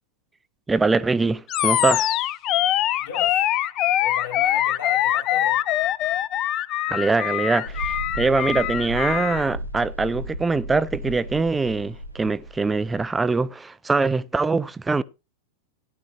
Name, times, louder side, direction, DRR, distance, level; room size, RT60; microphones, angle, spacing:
voice 1, 0.7-2.1 6.9-7.8 8.2-15.0, right 3 dB, 10° right, 0.5 m, -23 dB
Animal, 1.5-9.5, left 13 dB, 35° left, 0.5 m, -23 dB
voice 2, 3.0-3.6 4.0-5.6, left 7 dB, 60° left, 7.7 m, -37 dB
Mechanical fan, 7.6-13.0, right 1 dB, 90° left, 1.0 m, -35 dB
15.5 x 10.5 x 3.0 m
figure-of-eight pair, 90°, 0 cm